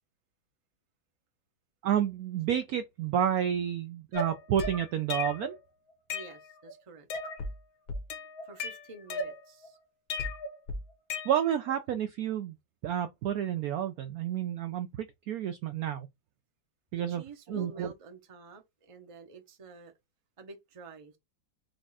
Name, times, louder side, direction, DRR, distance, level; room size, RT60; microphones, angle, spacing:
voice 1, 1.8-5.6 11.2-12.6 12.8-16.1 16.9-17.2 17.5-17.9, right 10 dB, 75° right, 0.8 m, -30 dB
sound 1, 4.1-5.6 5.9-6.7 7.1-7.6 7.9-9.7 10.1-11.7, left 3 dB, 65° left, 1.6 m, -36 dB
voice 2, 6.1-7.1 8.4-9.8 16.9-19.9 20.4-21.2, right 2 dB, 30° right, 0.6 m, -49 dB
4.9 x 2.4 x 4.0 m
omnidirectional pair, 2.0 m